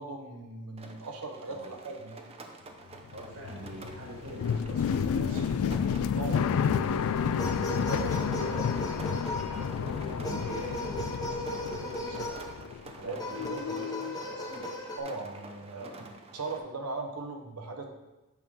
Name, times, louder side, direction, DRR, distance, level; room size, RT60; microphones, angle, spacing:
voice 1, 0.0-2.2 5.8-6.5 7.6-8.7 13.0-13.2 13.5-13.8 15.0-15.9 16.3-17.8, right 3 dB, 85° right, 4 dB, 1.0 m, -39 dB
Rain, 0.8-16.6, right 2 dB, 25° right, 0.6 m, -49 dB
sound 1, 3.0-13.1 13.3-14.2, left 7 dB, 65° left, 0.3 m, -31 dB
voice 2, 3.1-5.9 6.4-8.9 9.3-12.4 13.0-14.6 15.7-16.1, right 1 dB, 65° right, -2 dB, 2.1 m, -44 dB
sound 2, 6.6-7.0 7.4-9.8 10.2-12.5 13.2-15.0, left 1 dB, 15° left, 0.9 m, -37 dB
7.8 x 3.7 x 5.5 m, 1.1 s
head